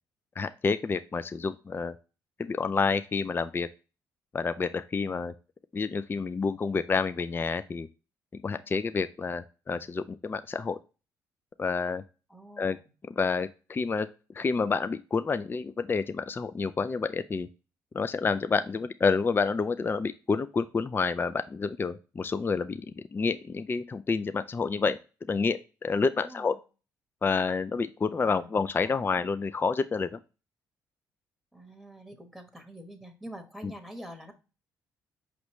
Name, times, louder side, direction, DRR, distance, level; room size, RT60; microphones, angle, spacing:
voice 1, 0.4-1.9 2.4-3.7 4.3-5.3 5.7-7.9 8.3-10.8 11.6-12.0 12.6-12.8 13.2-14.1 14.3-17.5 17.9-25.0 25.3-26.5 27.2-30.2, left 4 dB, 25° left, 12 dB, 0.4 m, -29 dB
voice 2, 12.3-12.9 26.2-26.6 28.2-29.1 31.5-34.3, right 1 dB, ahead, 6 dB, 1.2 m, -46 dB
5.3 x 3.0 x 3.0 m, 0.32 s
supercardioid pair, 60°, 8 cm